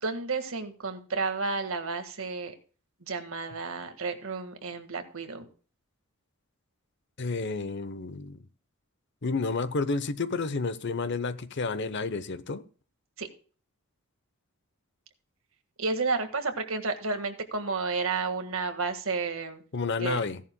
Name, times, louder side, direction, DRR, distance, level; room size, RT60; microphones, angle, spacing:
voice 1, 0.0-2.5 3.0-5.5 13.2-13.3 15.8-19.6 20.0-20.2, right 4 dB, 70° right, 1.7 m, -31 dB
voice 2, 7.2-8.4 9.2-12.6 19.7-20.4, left 4 dB, 55° left, 0.8 m, -30 dB
16.5 x 11.0 x 2.2 m
head